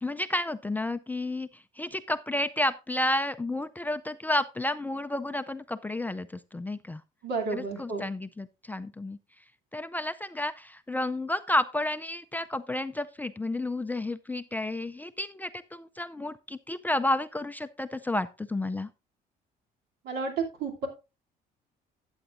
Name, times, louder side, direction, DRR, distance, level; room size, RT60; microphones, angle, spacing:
voice 1, 0.0-7.0 7.5-9.2 9.7-18.9, left 1 dB, 10° left, 10 dB, 0.4 m, -31 dB
voice 2, 7.2-8.0 20.0-20.9, right 4 dB, 75° right, 3 dB, 2.7 m, -31 dB
13.0 x 8.0 x 2.5 m, 0.27 s
cardioid pair, 110°, 17 cm